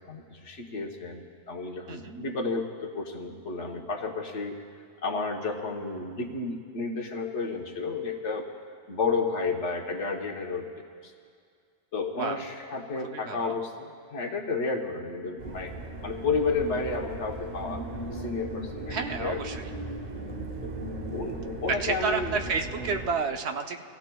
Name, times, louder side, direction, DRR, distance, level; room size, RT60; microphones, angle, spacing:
voice 1, 0.0-4.6 5.0-8.5 8.9-11.1 11.9-15.7 16.0-17.9 18.1-19.4 20.6-20.7 21.1-22.4, left 4 dB, 85° left, 2 dB, 1.4 m, -32 dB
voice 2, 1.9-2.2 12.2-12.4 13.1-13.6 18.9-19.7 21.7-23.8, right 4 dB, 70° right, 5 dB, 1.0 m, -30 dB
sound 1, 15.4-23.1, right 2 dB, 45° right, 0.9 m, -37 dB
23.5 x 15.5 x 2.3 m, 2.2 s
omnidirectional pair, 1.2 m